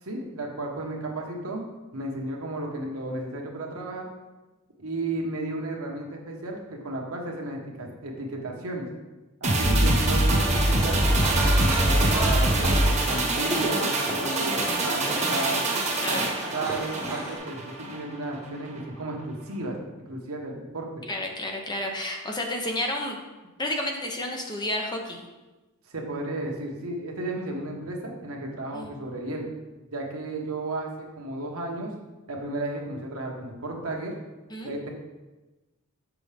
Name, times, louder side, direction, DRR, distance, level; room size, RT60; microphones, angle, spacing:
voice 1, 0.0-1.6 1.9-4.1 4.8-8.9 9.4-15.6 16.1-16.2 16.5-19.8 20.1-21.0 25.9-29.5 29.9-31.9 32.3-34.1 34.6-34.9, right 2 dB, 70° right, 0 dB, 1.2 m, -33 dB
sound 1, 9.4-18.0 18.3-18.4, right 1 dB, 35° right, 1.1 m, -24 dB
voice 2, 9.6-10.0 16.0-16.3 21.1-23.2 23.6-25.2 28.7-28.9 34.5-34.7, left 1 dB, 20° left, 2 dB, 0.7 m, -31 dB
sound 2, 10.4-17.4, right 1 dB, 10° right, 1.0 m, -33 dB
6.3 x 6.0 x 3.4 m, 1.1 s
head